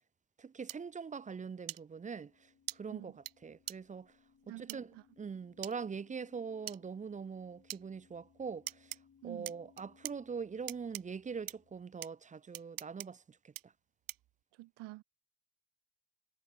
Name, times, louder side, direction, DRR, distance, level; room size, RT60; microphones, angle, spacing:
voice 1, 0.4-3.1 3.4-4.1 4.5-4.9 5.2-8.9 9.2-13.7, right 5 dB, 20° right, 0.5 m, -43 dB
sound 1, 0.7-0.8 1.7-1.8 2.7-2.8 3.3-3.4 3.7-3.8 4.7-4.8 5.6-5.7 6.7-6.8 7.7-7.8 8.7-9.0 9.4-10.1 10.7-11.0 11.5-11.6 12.0-12.1 12.5-13.1 13.5-13.6 14.1-14.3, right 15 dB, 50° right, 0.8 m, -42 dB
sound 2, 1.7-11.8, left 6 dB, 40° left, 6.4 m, -68 dB
voice 2, 4.5-5.0 9.2-9.5 14.5-15.0, right 20 dB, 70° right, 1.7 m, -48 dB
supercardioid pair, 75°, 42 cm